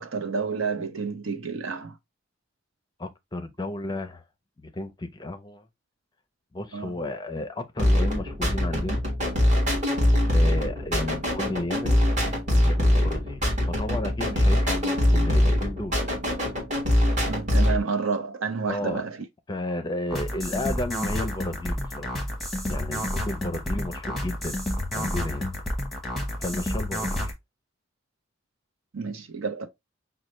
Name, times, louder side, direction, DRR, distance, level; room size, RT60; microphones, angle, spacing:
voice 1, 0.0-2.0 6.7-6.9 17.3-19.3 28.9-29.7, right 5 dB, 75° right, 0.7 m, -30 dB
voice 2, 3.0-4.2 4.6-5.7 6.5-9.0 10.2-12.1 12.4-16.0 18.7-19.0 19.5-22.1 22.7-24.6 24.9-25.5 26.4-27.3, left 2 dB, 20° left, 0.5 m, -33 dB
sound 1, 7.8-17.8, left 1 dB, 35° right, 1.5 m, -23 dB
sound 2, 20.1-27.3, left 1 dB, ahead, 1.0 m, -30 dB
5.4 x 2.2 x 3.0 m
head